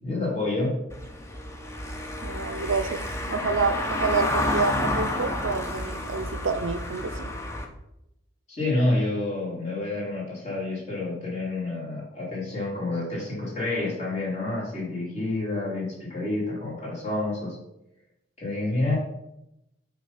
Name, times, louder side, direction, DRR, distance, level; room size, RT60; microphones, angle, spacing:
voice 1, 0.0-0.8 8.5-17.6 18.4-18.9, left 2 dB, 35° left, -5 dB, 3.2 m, -28 dB
Car passing by / Engine, 0.9-7.7, left 1 dB, 15° left, 0.7 m, -30 dB
voice 2, 2.2-3.0 3.3-7.3, right 4 dB, 70° right, 10 dB, 0.5 m, -28 dB
8.5 x 3.8 x 5.8 m, 0.86 s
head